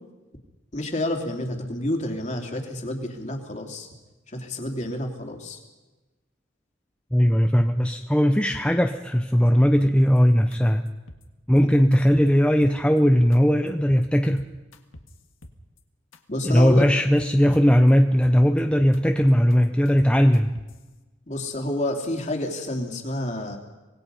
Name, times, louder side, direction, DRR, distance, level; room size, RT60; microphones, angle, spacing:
voice 1, 0.7-3.9 4.3-5.6 11.6-11.7 16.3-16.8 21.3-23.6, left 1 dB, 35° left, 3 dB, 2.8 m, -29 dB
voice 2, 7.1-10.9 11.5-14.5 16.4-20.6, equal, 5° left, 5 dB, 0.7 m, -19 dB
sound 1, 9.8-10.2 10.5-10.6 10.9-11.2 11.6-12.3 12.6-13.4 13.7-14.0 14.4-15.8 16.1-16.2 16.5-16.8 17.2-17.9 18.2-19.0 19.3-20.8, left 1 dB, 80° left, 1.9 m, -46 dB
25.5 x 19.5 x 5.5 m, 1.1 s
head